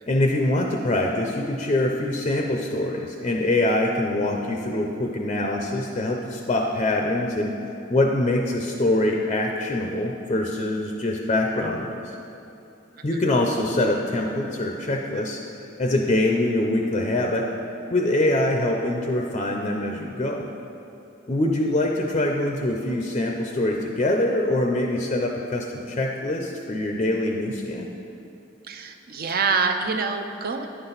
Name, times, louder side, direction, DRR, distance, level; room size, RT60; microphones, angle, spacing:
voice 1, 0.1-7.5 7.9-12.0 13.0-15.4 15.8-17.5 17.9-20.4 21.3-27.9, left 1 dB, 35° left, 1 dB, 0.5 m, -24 dB
voice 2, 28.6-30.7, right 5 dB, 50° right, 6 dB, 0.6 m, -26 dB
9.8 x 5.8 x 4.0 m, 2.8 s
head